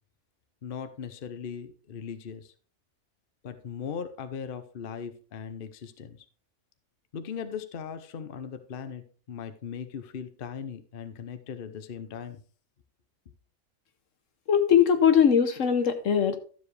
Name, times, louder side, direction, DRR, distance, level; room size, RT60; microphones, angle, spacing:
voice 1, 0.6-2.5 3.4-6.2 7.1-12.4, left 7 dB, 45° left, 10 dB, 0.9 m, -39 dB
voice 2, 14.5-16.4, left 8 dB, 65° left, 9 dB, 1.3 m, -21 dB
12.5 x 7.4 x 3.3 m, 0.40 s
omnidirectional pair, 1.5 m